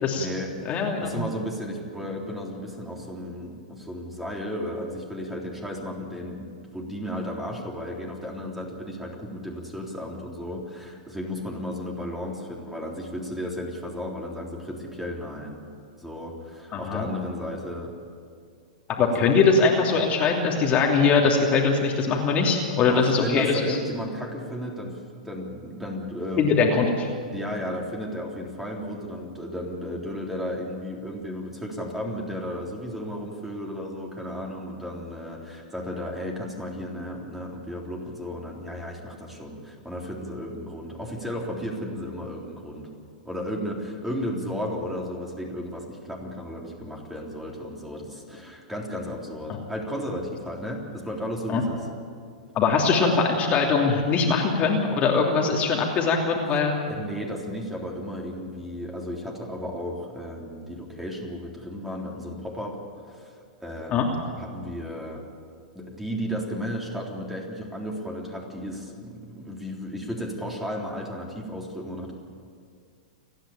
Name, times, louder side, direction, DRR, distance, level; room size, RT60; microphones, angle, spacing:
voice 1, 0.1-6.5 6.7-15.6 16.0-17.9 19.0-19.1 19.3-19.4 22.9-26.5 27.3-42.9 43.2-51.8 56.9-62.8 63.0-65.3 65.7-72.1, equal, 5° right, -1 dB, 3.7 m, -34 dB
voice 2, 0.6-1.2 16.7-17.1 19.0-23.8 26.4-27.1 51.5-51.6 52.5-56.8 63.9-64.1, left 4 dB, 30° left, 0 dB, 3.0 m, -22 dB
29.5 x 10.5 x 9.1 m, 2.1 s
hypercardioid pair, 120°, 4 cm